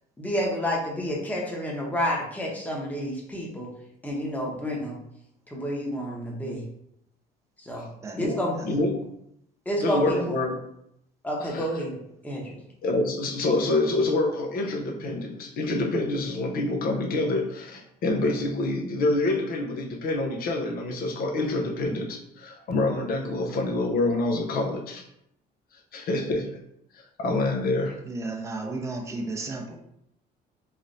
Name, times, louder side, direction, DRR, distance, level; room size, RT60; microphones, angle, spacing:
voice 1, 0.2-3.7 4.0-5.0 5.5-6.6 7.6-7.8 8.2-8.6 9.7-10.3 11.2-12.0 12.2-12.4, equal, 10° left, -2 dB, 0.9 m, -29 dB
voice 2, 8.1-9.0 9.8-10.6 11.4-11.7 12.8-25.0 25.9-26.6 26.9-28.0, left 2 dB, 60° left, 2 dB, 0.7 m, -27 dB
voice 3, 28.0-29.8, right 2 dB, 15° right, 1 dB, 0.5 m, -33 dB
3.2 x 3.1 x 2.6 m, 0.75 s
cardioid pair, 110°, 17 cm